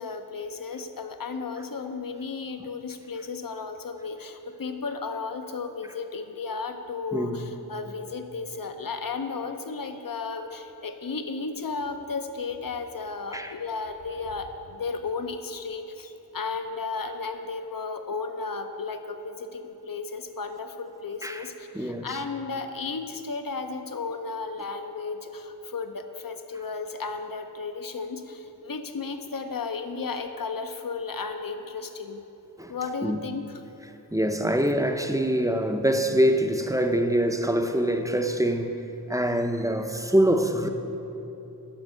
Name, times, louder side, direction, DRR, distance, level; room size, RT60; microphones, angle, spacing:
voice 1, 0.0-32.2 32.7-33.6, left 4 dB, 60° left, 7 dB, 0.7 m, -34 dB
voice 2, 7.1-7.5 13.3-13.5 21.2-21.5 21.7-22.2 32.6-32.7 33.0-33.2 34.1-38.8 39.1-40.7, equal, 10° right, 5 dB, 0.5 m, -24 dB
9.2 x 5.3 x 6.4 m, 3.0 s
wide cardioid pair, 40°, 39 cm